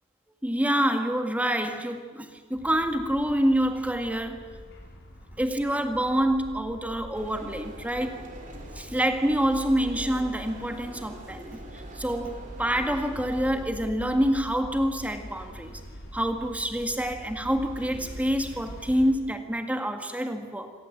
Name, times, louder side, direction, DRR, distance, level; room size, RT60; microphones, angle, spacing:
voice 1, 0.4-4.5 5.4-8.2 8.8-15.8 16.1-20.7, equal, 5° right, 6 dB, 1.8 m, -27 dB
sound 1, 2.5-19.1, equal, 60° left, 5.2 m, -43 dB
sound 2, 7.1-13.7, right 1 dB, 40° right, 3.2 m, -46 dB
26.5 x 17.5 x 8.0 m, 1.5 s
head